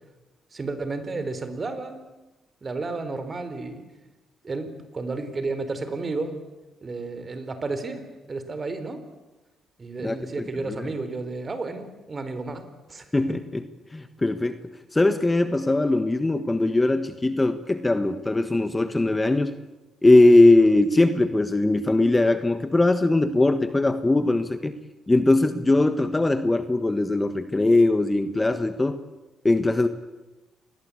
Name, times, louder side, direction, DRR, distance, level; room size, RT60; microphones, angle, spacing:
voice 1, 0.5-2.1 2.6-3.8 4.4-6.4 6.8-9.0 9.8-13.4, right 3 dB, 30° right, 10 dB, 3.9 m, -32 dB
voice 2, 13.1-13.6 13.9-14.6 14.9-19.5 20.0-24.7 25.1-29.0 29.4-29.9, left 2 dB, 15° left, 10 dB, 1.4 m, -20 dB
28.0 x 21.0 x 8.5 m, 1.1 s
cardioid pair, 90°, 0 cm